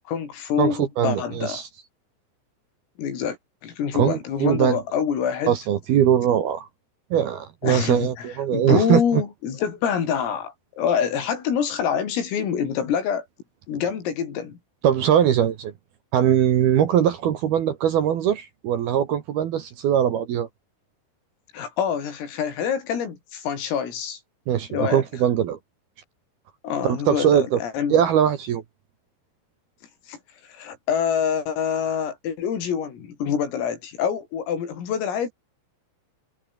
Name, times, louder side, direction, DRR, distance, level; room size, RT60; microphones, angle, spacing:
voice 1, 0.0-1.6 3.0-3.4 3.6-5.6 7.6-13.3 13.7-14.6 21.5-24.2 24.7-25.0 26.6-28.0 30.1-30.2 30.5-35.3, left 7 dB, 80° left, 7.2 m, -26 dB
voice 2, 0.6-1.7 3.9-4.8 5.5-6.7 7.1-9.2 14.8-15.7 16.1-20.5 24.5-25.6 26.8-27.6 27.9-28.6, right 10 dB, 60° right, 2.9 m, -21 dB
omnidirectional pair, 6.0 m